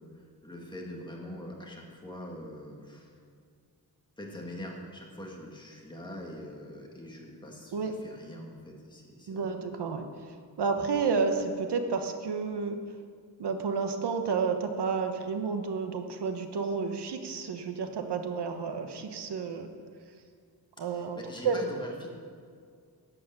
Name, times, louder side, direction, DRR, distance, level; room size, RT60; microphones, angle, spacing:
voice 1, 0.0-3.1 4.2-9.6 20.8-22.1, left 1 dB, 10° left, -2 dB, 1.9 m, -43 dB
voice 2, 9.3-10.1 10.6-12.8 13.4-19.7 20.8-21.2 21.4-21.6, right 5 dB, 80° right, 7 dB, 1.1 m, -30 dB
12.0 x 8.6 x 6.9 m, 2.1 s
wide cardioid pair, 170°, 40 cm